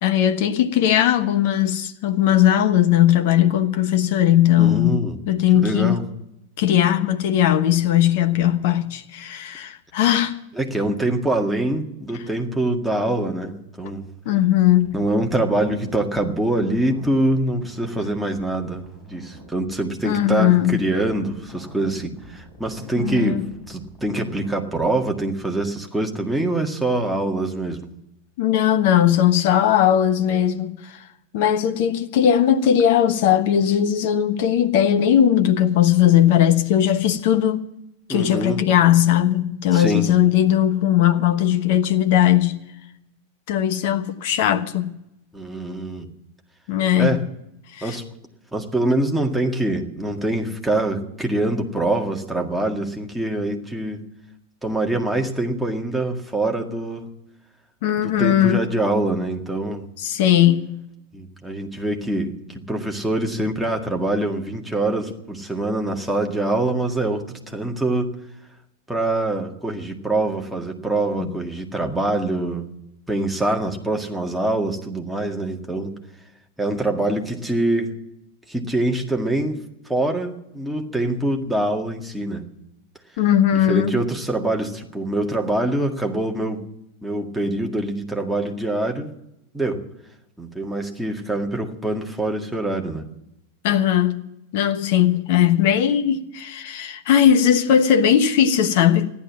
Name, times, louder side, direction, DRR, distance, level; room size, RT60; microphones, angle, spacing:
voice 1, 0.0-5.0 5.3-6.0 6.6-10.4 14.2-15.0 20.0-20.8 23.0-23.4 28.4-31.0 31.3-37.6 38.1-42.6 43.5-44.9 46.7-47.2 47.7-48.0 57.8-58.7 60.0-60.7 71.2-71.3 83.2-84.0 93.6-99.1, left 10 dB, 50° left, 1.1 m, -18 dB
voice 2, 4.6-5.2 5.5-6.0 10.6-14.1 14.9-18.8 19.1-27.9 38.1-38.6 39.7-40.1 45.3-46.1 47.0-47.3 47.8-48.0 48.5-54.0 54.6-57.1 58.0-59.8 61.1-62.3 62.7-68.1 68.9-72.7 73.1-75.9 76.6-77.9 78.5-82.5 83.7-86.6 87.0-89.1 89.5-89.8 90.4-93.0, right 2 dB, ahead, 1.9 m, -24 dB
sound 1, 14.8-24.9, right 1 dB, 15° left, 6.8 m, -43 dB
14.5 x 11.0 x 7.5 m
figure-of-eight pair, 90°, 0 cm